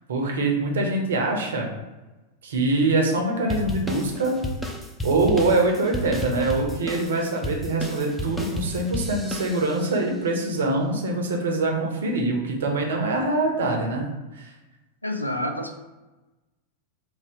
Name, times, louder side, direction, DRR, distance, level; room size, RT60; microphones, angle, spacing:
voice 1, 0.1-1.7 2.4-4.4 5.0-14.1 14.4-14.5, right 2 dB, 65° right, 1 dB, 0.6 m, -24 dB
sound 1, 3.5-10.0, left 1 dB, 5° left, 0.4 m, -33 dB
voice 2, 15.0-15.7, left 1 dB, 85° left, 5 dB, 0.3 m, -28 dB
2.7 x 2.2 x 3.5 m, 1.1 s
figure-of-eight pair, 90°, 0 cm